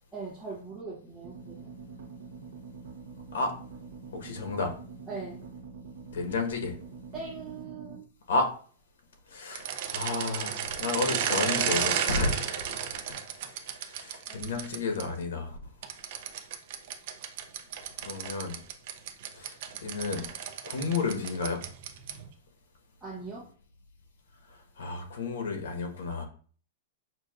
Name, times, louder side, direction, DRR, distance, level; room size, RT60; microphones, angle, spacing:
voice 1, 0.1-1.7 5.1-5.5 7.1-8.0 14.3-14.5 23.0-23.5, right 4 dB, ahead, -13 dB, 1.0 m, -40 dB
sound 1, 1.2-8.0, right 4 dB, 70° right, 1.1 m, -45 dB
voice 2, 4.1-4.7 6.1-6.7 8.3-8.5 9.3-12.6 13.1-15.6 18.0-18.6 19.3-20.3 20.6-21.6 24.8-26.3, left 3 dB, 75° left, 4 dB, 1.2 m, -32 dB
sound 2, 9.5-15.0 15.8-22.3, right 8 dB, 40° right, 0.4 m, -33 dB
6.0 x 2.6 x 2.4 m, 0.42 s
supercardioid pair, 180°, 0 cm